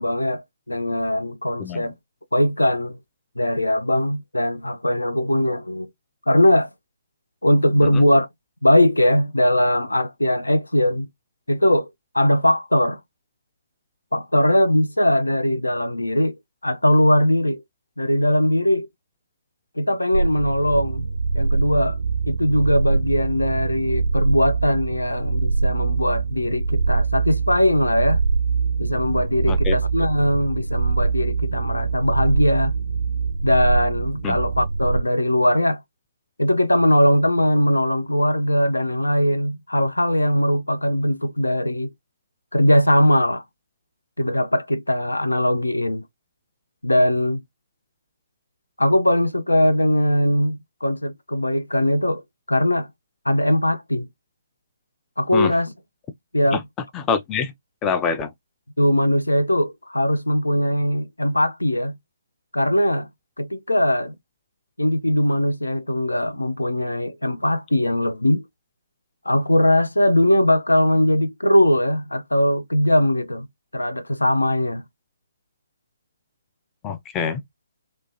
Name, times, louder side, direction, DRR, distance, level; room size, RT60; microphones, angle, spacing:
voice 1, 0.0-1.9 2.3-3.0 3.4-5.9 6.3-6.7 7.4-8.3 8.6-11.1 11.5-11.9 12.1-13.0 14.1-16.4 16.6-17.6 18.0-18.9 19.8-21.1 21.3-22.0 22.2-28.2 28.8-32.8 33.4-35.8 36.4-41.9 42.5-43.4 44.2-46.0 46.8-47.4 48.8-52.2 52.5-52.9 53.3-54.1 55.2-55.7 56.3-56.6 58.8-62.0 62.5-63.1 63.4-64.1 64.8-68.4 69.3-73.5 73.7-74.8, left 1 dB, 80° left, 0.4 m, -20 dB
sound 1, 20.1-35.0, right 4 dB, 70° right, 0.4 m, -23 dB
voice 2, 56.9-57.5 57.8-58.3 76.8-77.4, left 6 dB, 15° left, 0.4 m, -25 dB
2.9 x 2.2 x 2.6 m
figure-of-eight pair, 135°, 0 cm